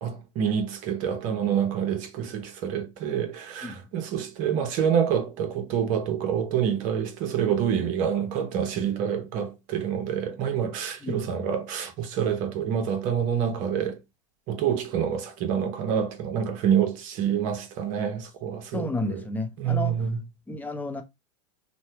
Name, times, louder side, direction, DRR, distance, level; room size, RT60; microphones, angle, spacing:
voice 1, 0.0-14.0 14.5-19.2 19.6-20.2, right 8 dB, 50° right, 0.9 m, -27 dB
voice 2, 18.7-20.0 20.5-21.0, left 1 dB, 10° left, 0.8 m, -31 dB
3.1 x 2.2 x 2.7 m
hypercardioid pair, 95°, 17 cm